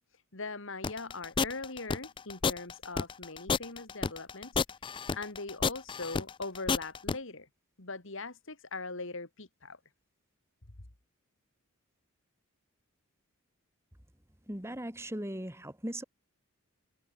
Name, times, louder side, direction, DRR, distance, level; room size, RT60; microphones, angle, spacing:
voice 1, 0.0-4.8 5.1-7.5 7.8-9.8, left 3 dB, 60° left, 2.6 m, -41 dB
sound 1, 0.8-7.1, left 5 dB, 20° left, 0.3 m, -30 dB
voice 2, 14.5-16.0, right 1 dB, 10° right, 3.4 m, -38 dB
head